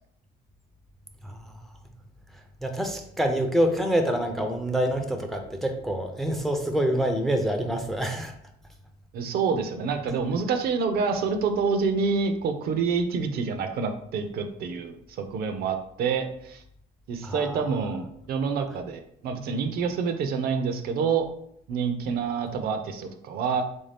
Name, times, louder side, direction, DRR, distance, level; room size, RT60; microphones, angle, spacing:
voice 1, 1.2-1.7 2.6-8.3 17.2-17.6, right 1 dB, ahead, 5 dB, 0.4 m, -26 dB
voice 2, 9.1-16.6 17.1-21.3 21.7-23.7, right 5 dB, 65° right, 7 dB, 0.5 m, -27 dB
3.5 x 2.7 x 3.3 m, 0.70 s
cardioid pair, 110°, 17 cm